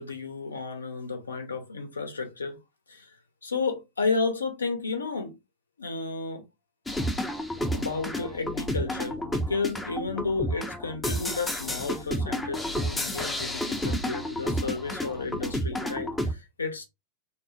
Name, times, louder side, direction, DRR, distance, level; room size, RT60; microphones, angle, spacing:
voice 1, 0.0-2.6 2.9-3.1 3.4-5.4 5.8-6.4 7.7-16.9, left 4 dB, 75° left, 0.6 m, -32 dB
sound 1, 6.9-16.3, equal, 10° left, 0.5 m, -31 dB
3.5 x 2.0 x 2.6 m
figure-of-eight pair, 90°, 0 cm